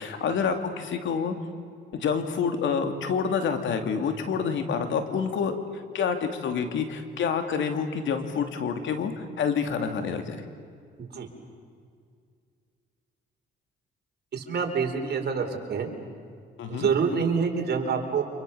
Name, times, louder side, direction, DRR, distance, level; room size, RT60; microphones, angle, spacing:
voice 1, 0.0-1.3 1.9-5.5 5.9-10.4 16.6-16.9, left 6 dB, 75° left, 6 dB, 2.9 m, -28 dB
voice 2, 14.3-15.9 16.7-18.2, right 6 dB, 55° right, 3 dB, 4.3 m, -26 dB
30.0 x 27.0 x 7.0 m, 2.2 s
cardioid pair, 90°, 20 cm